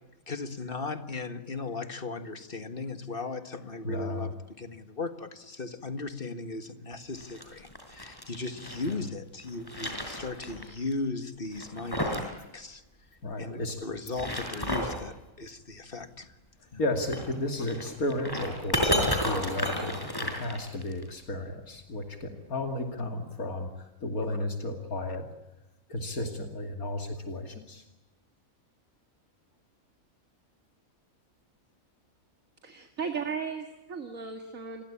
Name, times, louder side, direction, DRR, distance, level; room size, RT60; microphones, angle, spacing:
voice 1, 0.3-4.3 4.6-12.8 13.4-16.4 16.7-16.8, left 3 dB, 40° left, 9 dB, 2.0 m, -37 dB
voice 2, 3.8-4.3 13.2-13.8 16.8-23.7 24.0-25.3 25.9-27.8, left 1 dB, 90° left, 5 dB, 3.0 m, -33 dB
sound 1, 7.1-8.9 9.4-10.6 10.9-11.0 11.5-12.3 12.6-12.7 13.9-15.0 17.0-21.0, equal, 15° left, 5.4 m, -32 dB
voice 3, 32.6-34.8, right 5 dB, 65° right, 6 dB, 2.5 m, -36 dB
29.0 x 22.5 x 8.6 m, 1.0 s
omnidirectional pair, 1.5 m